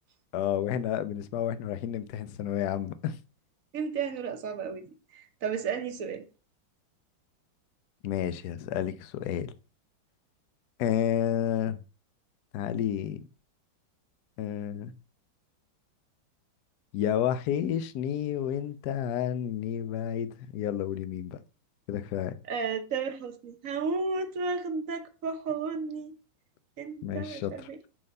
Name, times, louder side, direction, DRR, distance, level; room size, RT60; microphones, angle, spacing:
voice 1, 0.3-3.2 8.0-9.5 10.8-11.8 12.5-13.2 14.4-14.9 16.9-21.4 21.9-22.4 27.0-27.7, left 10 dB, 65° left, 1.1 m, -30 dB
voice 2, 3.7-4.9 5.1-6.3 22.5-26.2 26.8-27.8, right 5 dB, 55° right, 1.1 m, -33 dB
7.7 x 4.0 x 5.3 m
omnidirectional pair, 2.1 m